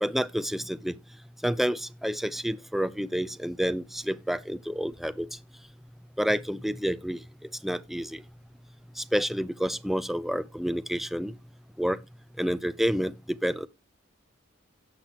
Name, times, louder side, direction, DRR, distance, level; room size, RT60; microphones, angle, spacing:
voice 1, 0.0-0.9 1.4-5.3 6.2-7.2 7.6-8.2 9.0-11.3 11.8-12.0 12.4-13.1 13.4-13.7, equal, ahead, 0.5 m, -29 dB
17.0 x 5.8 x 2.9 m
head